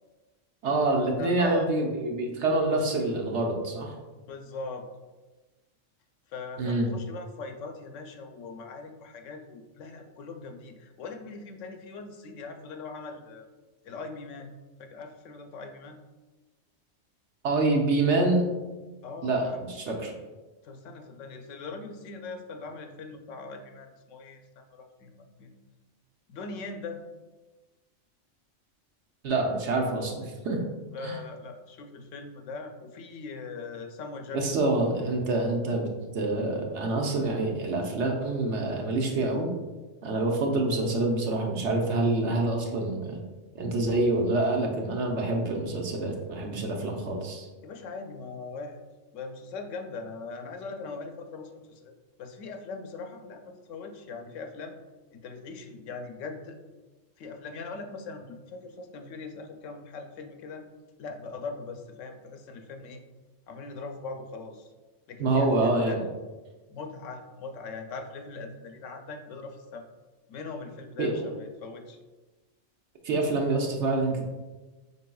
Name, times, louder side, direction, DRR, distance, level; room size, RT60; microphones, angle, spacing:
voice 1, 0.6-3.9 6.6-6.9 17.4-18.4 19.2-20.1 29.2-30.6 31.0-31.2 34.3-39.5 40.0-43.2 43.5-47.5 65.2-66.0 71.0-71.1 73.0-74.2, right 2 dB, 65° right, 1 dB, 1.0 m, -26 dB
voice 2, 1.2-1.7 4.3-4.8 6.3-13.5 13.8-14.5 14.8-16.0 19.0-20.1 20.6-25.5 26.3-27.0 30.9-34.4 47.6-48.8 49.1-51.9 52.2-54.8 55.1-56.6 57.2-60.7 61.0-63.0 63.5-64.7 65.1-66.0 66.7-69.8 70.3-72.0, left 4 dB, 75° left, 5 dB, 0.9 m, -40 dB
5.2 x 4.1 x 2.3 m, 1.2 s
omnidirectional pair, 1.3 m